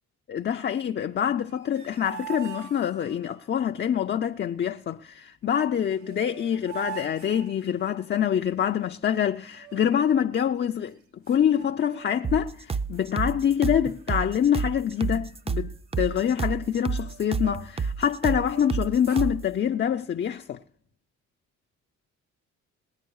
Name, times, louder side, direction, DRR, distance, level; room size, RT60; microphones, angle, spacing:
voice 1, 0.3-10.9 11.3-15.7 16.0-20.6, left 9 dB, 35° left, 0.4 m, -25 dB
sound 1, 1.4-3.4 5.6-5.7 6.0-8.2 9.5-10.3 10.9-11.0 11.3-12.4 12.7-13.0 13.6-14.2 14.5-14.7 15.0-17.9 18.2-19.3, right 9 dB, 70° right, 2.2 m, -44 dB
sound 2, 12.2-19.5, right 5 dB, 20° right, 0.5 m, -30 dB
19.5 x 9.1 x 4.7 m
cardioid pair, 90°, 30 cm